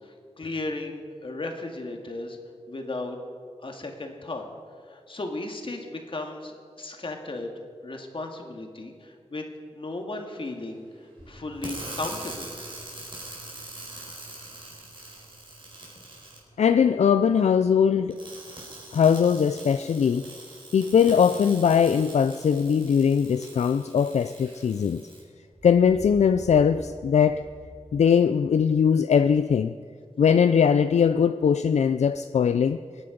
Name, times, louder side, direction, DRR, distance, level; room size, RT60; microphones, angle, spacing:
voice 1, 0.0-2.4 2.7-3.2 3.6-4.4 4.9-7.5 7.8-9.4 9.7-12.5, left 2 dB, 50° left, 2.0 m, -35 dB
sound 1, 11.2-23.1 23.4-23.5 25.5-28.1, right 1 dB, 5° right, 2.3 m, -50 dB
sound 2, 11.6-16.4 18.1-25.2, right 2 dB, 45° right, 4.8 m, -42 dB
voice 2, 16.6-18.2 18.9-20.3 20.7-25.0 25.6-27.5 27.9-29.7 30.2-32.8, left 7 dB, 75° left, 0.4 m, -21 dB
25.5 x 9.7 x 5.2 m
wide cardioid pair, 100°, 12 cm